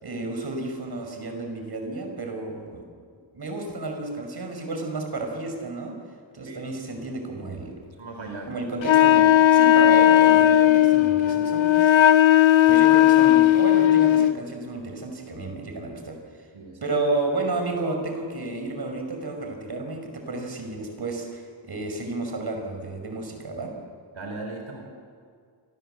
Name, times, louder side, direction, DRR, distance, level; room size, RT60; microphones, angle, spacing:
voice 1, 0.0-2.8 3.3-6.0 6.3-7.7 8.5-11.9 12.7-16.2 16.8-23.8, right 2 dB, 55° right, 4 dB, 5.5 m, -31 dB
voice 2, 8.0-8.5 16.5-16.9 24.1-24.8, right 3 dB, 85° right, 3 dB, 4.1 m, -37 dB
Wind instrument woodwind instrument, 8.8-14.4, left 12 dB, 85° left, 0.7 m, -16 dB
28.5 x 24.5 x 8.0 m, 2.2 s
wide cardioid pair, 130°, 45 cm